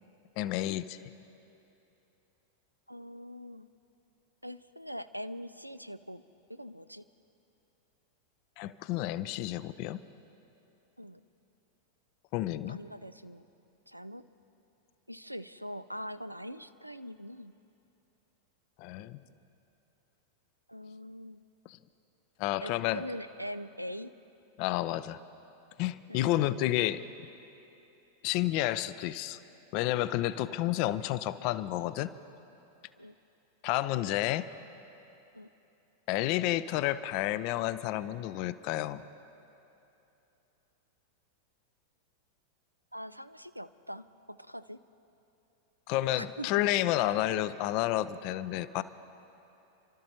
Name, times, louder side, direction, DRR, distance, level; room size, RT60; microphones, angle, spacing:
voice 1, 0.4-1.0 8.6-10.0 12.3-12.8 18.8-19.2 21.7-21.8 22.4-23.0 24.6-25.2 25.8-27.0 28.2-29.4 29.7-32.1 33.6-34.5 36.1-39.0 45.9-48.8, left 15 dB, 45° left, 15 dB, 0.4 m, -30 dB
voice 2, 2.9-3.7 4.4-6.2 6.5-7.1 11.0-11.2 12.7-13.5 13.9-14.3 15.1-17.5 20.7-21.5 22.6-24.1 26.1-26.8 30.3-30.4 33.0-33.1 35.3-35.5 42.9-44.8 46.2-46.6, equal, 90° right, 13 dB, 0.4 m, -43 dB
30.0 x 12.5 x 2.9 m, 3.0 s
figure-of-eight pair, 90°, 0 cm